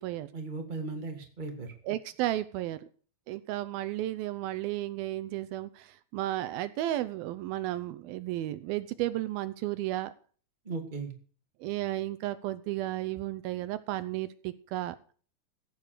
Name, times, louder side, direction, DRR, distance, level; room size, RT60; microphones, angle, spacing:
voice 1, 0.3-1.7 10.7-11.1, right 3 dB, 15° right, 3 dB, 1.9 m, -37 dB
voice 2, 1.8-2.9 3.3-10.1 11.6-15.0, right 15 dB, 80° right, 13 dB, 2.5 m, -33 dB
16.0 x 7.9 x 6.6 m, 0.43 s
omnidirectional pair, 4.4 m